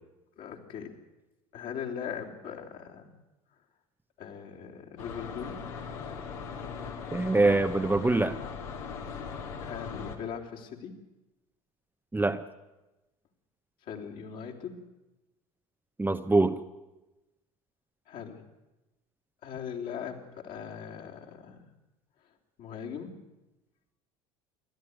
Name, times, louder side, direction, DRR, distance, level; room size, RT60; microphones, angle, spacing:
voice 1, 0.4-0.9 1.5-3.1 4.2-5.6 9.6-11.0 13.8-14.9 18.1-18.4 19.4-21.6 22.6-23.2, left 7 dB, 50° left, 0 dB, 3.3 m, -40 dB
sound 1, 5.0-10.2, left 5 dB, 65° left, 2.5 m, -39 dB
voice 2, 7.1-8.4 12.1-12.4 16.0-16.6, right 2 dB, 10° right, 7 dB, 0.9 m, -24 dB
27.5 x 12.5 x 9.5 m, 1.0 s
figure-of-eight pair, 65°, 19 cm